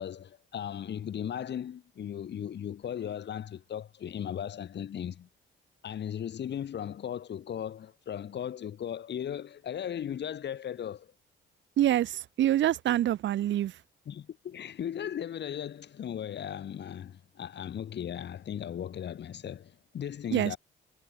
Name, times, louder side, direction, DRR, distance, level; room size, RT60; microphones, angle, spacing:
voice 1, 0.0-5.3 5.8-11.1 14.1-20.6, left 9 dB, 60° left, 3.8 m, -37 dB
voice 2, 11.8-13.7 20.3-20.5, right 12 dB, 70° right, 1.0 m, -26 dB
cardioid pair, 90°, 20 cm